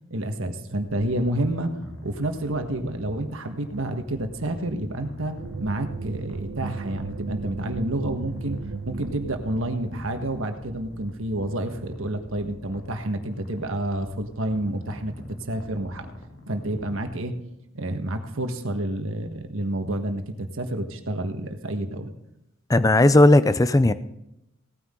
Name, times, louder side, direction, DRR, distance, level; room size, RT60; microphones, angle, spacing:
voice 1, 0.1-1.7 2.0-8.6 8.9-15.1 15.5-16.1 16.5-17.3 17.7-22.1, right 1 dB, 70° right, 6 dB, 1.4 m, -29 dB
Purr, 0.9-17.0, left 1 dB, 70° left, 2.4 m, -44 dB
sound 1, 5.4-10.0, right 4 dB, 45° right, 0.4 m, -35 dB
voice 2, 22.7-23.9, left 1 dB, 15° left, 14 dB, 0.5 m, -16 dB
17.5 x 9.5 x 3.8 m, 0.86 s
head